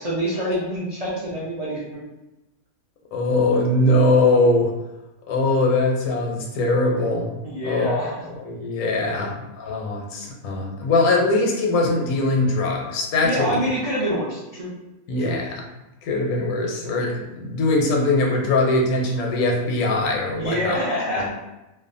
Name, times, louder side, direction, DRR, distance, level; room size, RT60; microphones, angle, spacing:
voice 1, 0.0-2.0 7.4-8.1 9.2-9.3 13.2-14.7 15.2-15.4 20.3-21.3, equal, 60° right, -9 dB, 0.3 m, -26 dB
voice 2, 3.1-4.7 5.3-7.3 7.6-13.6 15.1-15.6 16.0-20.9 21.2-21.3, left 2 dB, 90° left, 0 dB, 1.1 m, -21 dB
2.7 x 2.1 x 2.5 m, 0.97 s
omnidirectional pair, 1.5 m